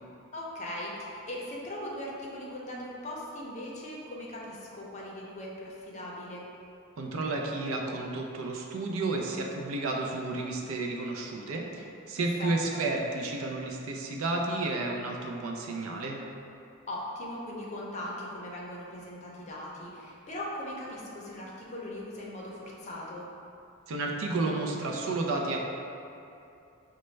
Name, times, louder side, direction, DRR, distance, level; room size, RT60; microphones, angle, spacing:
voice 1, 0.3-6.4 12.2-12.8 16.9-23.3, left 1 dB, 35° left, -4 dB, 0.6 m, -39 dB
voice 2, 7.0-16.2 23.9-25.6, right 2 dB, 75° right, 0 dB, 0.4 m, -31 dB
5.0 x 2.2 x 3.2 m, 2.7 s
head